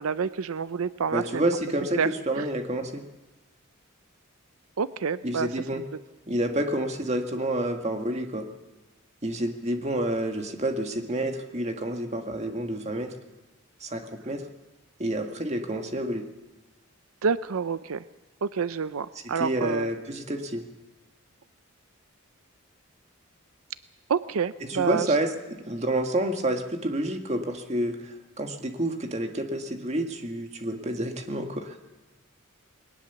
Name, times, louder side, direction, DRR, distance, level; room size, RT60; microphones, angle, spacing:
voice 1, 0.0-1.4 1.9-2.1 2.4-2.5 4.8-5.8 17.2-18.0 18.4-19.9 24.1-25.1, right 6 dB, 90° right, 14 dB, 0.6 m, -28 dB
voice 2, 1.1-3.1 5.2-5.8 6.3-8.5 9.2-13.2 13.8-14.5 15.0-16.3 19.2-20.6 24.6-25.3 25.7-31.8, right 1 dB, 30° right, 5 dB, 1.8 m, -29 dB
21.0 x 19.0 x 7.0 m, 1.1 s
head